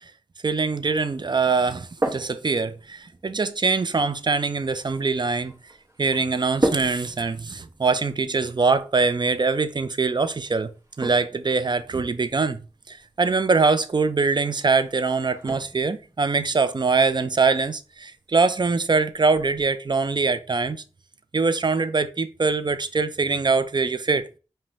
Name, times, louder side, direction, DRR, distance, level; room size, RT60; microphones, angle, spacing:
voice 1, 0.4-5.5 6.0-10.7 11.0-12.6 12.9-20.8 21.3-24.3, right 4 dB, 40° right, 0.4 m, -23 dB
sound 1, 1.6-19.6, right 1 dB, 25° right, 0.9 m, -37 dB
5.2 x 2.2 x 3.0 m
cardioid pair, 45°, 11 cm